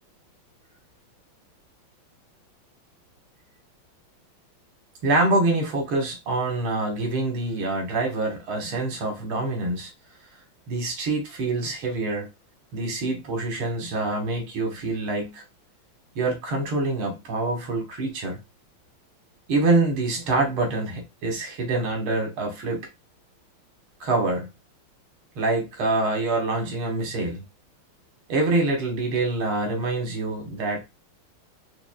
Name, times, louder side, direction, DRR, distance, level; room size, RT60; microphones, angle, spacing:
voice 1, 5.0-9.9 10.7-12.3 12.7-15.4 16.2-18.4 19.5-22.9 24.0-24.5 25.4-27.4 28.3-30.8, right 2 dB, 80° right, 2.2 m, -25 dB
5.1 x 2.8 x 2.3 m
omnidirectional pair, 2.3 m